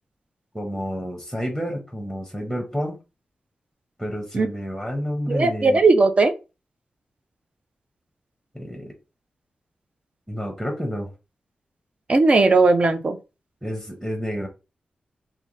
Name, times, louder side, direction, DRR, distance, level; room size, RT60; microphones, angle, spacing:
voice 1, 0.5-3.0 4.0-5.8 8.5-8.9 10.3-11.1 13.6-14.5, equal, 5° right, 1.1 m, -29 dB
voice 2, 5.3-6.3 12.1-13.2, right 3 dB, 40° right, 0.6 m, -17 dB
3.6 x 2.7 x 3.9 m
wide cardioid pair, 95°, 3 cm